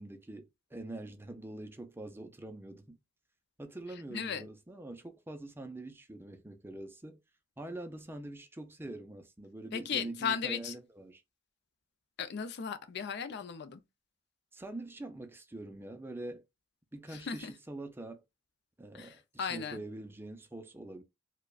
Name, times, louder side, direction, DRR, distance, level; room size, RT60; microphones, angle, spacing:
voice 1, 0.0-3.0 3.6-7.2 7.6-11.2 14.5-16.4 16.9-18.2 18.8-21.0, right 2 dB, 10° right, 0.4 m, -44 dB
voice 2, 4.1-4.5 9.7-10.7 12.2-13.8 17.1-17.5 18.9-19.8, left 6 dB, 60° left, 0.4 m, -36 dB
4.7 x 2.2 x 2.3 m
head